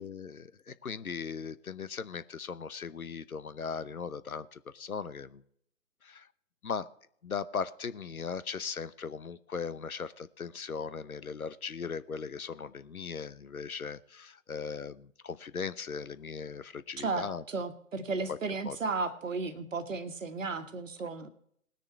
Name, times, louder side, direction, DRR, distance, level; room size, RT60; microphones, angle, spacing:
voice 1, 0.0-5.4 6.0-6.3 6.6-6.9 7.2-17.4 18.3-18.4 18.6-18.8, left 5 dB, 80° left, 15 dB, 0.9 m, -38 dB
voice 2, 17.0-21.3, right 4 dB, 60° right, 10 dB, 1.5 m, -34 dB
20.0 x 6.8 x 4.5 m, 0.69 s
figure-of-eight pair, 140°, 42 cm